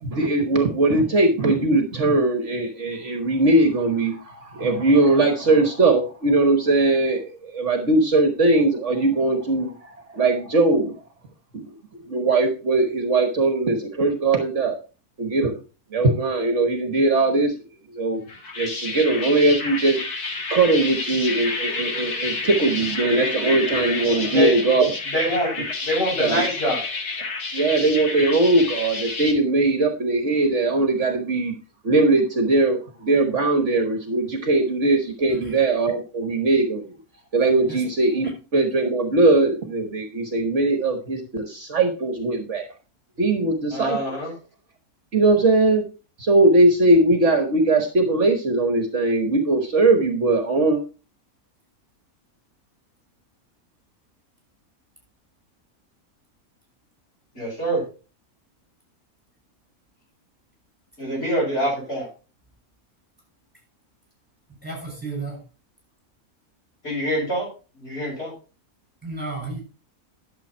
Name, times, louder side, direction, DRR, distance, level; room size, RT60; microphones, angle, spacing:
voice 1, 0.0-10.9 11.6-11.8 12.1-14.7 15.2-15.6 15.9-17.6 17.9-18.2 18.6-20.0 20.5-24.9 26.2-26.4 27.5-31.5 31.8-37.0 37.3-42.7 43.2-44.3 45.1-45.9 46.2-50.8, right 2 dB, 55° right, 6 dB, 1.5 m, -20 dB
sound 1, 18.3-29.3, left 3 dB, 85° left, 2.4 m, -29 dB
voice 2, 25.1-25.5 25.8-26.8 43.7-44.3 57.3-57.8 61.0-62.1 66.8-67.5 67.8-68.3, equal, 40° left, -4 dB, 7.4 m, -24 dB
voice 3, 64.6-65.4 69.0-69.6, right 3 dB, 5° right, -1 dB, 6.3 m, -33 dB
11.5 x 7.4 x 4.3 m, 0.33 s
omnidirectional pair, 1.6 m